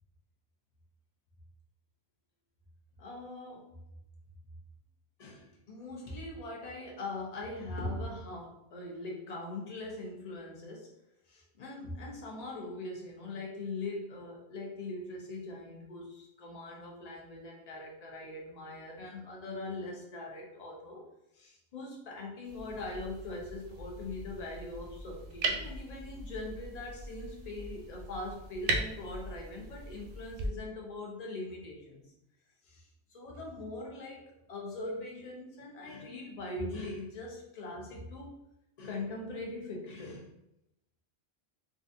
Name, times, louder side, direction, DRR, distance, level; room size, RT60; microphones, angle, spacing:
voice 1, 3.0-3.7 5.2-10.9 11.3-21.0 21.3-32.1 32.6-32.8 33.1-38.3 38.8-40.3, left 2 dB, 40° left, -1 dB, 0.7 m, -41 dB
sound 1, 22.4-30.5, right 2 dB, 65° right, 0.7 m, -39 dB
3.7 x 2.5 x 2.6 m, 0.84 s
omnidirectional pair, 1.1 m